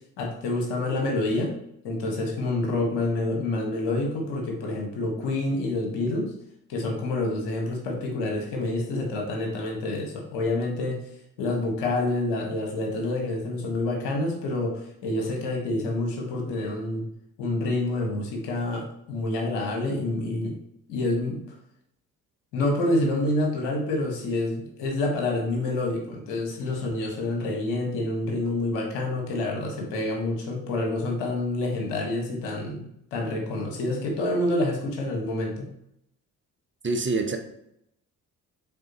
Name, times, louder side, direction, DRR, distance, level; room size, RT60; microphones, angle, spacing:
voice 1, 0.2-1.5 1.8-6.3 6.7-11.0 11.4-17.0 17.4-20.5 20.9-21.4 22.5-35.7, left 2 dB, 70° left, 1 dB, 1.6 m, -27 dB
voice 2, 36.8-37.4, right 3 dB, 25° right, 5 dB, 0.9 m, -25 dB
8.5 x 3.8 x 3.0 m, 0.76 s
figure-of-eight pair, 45°, 45 cm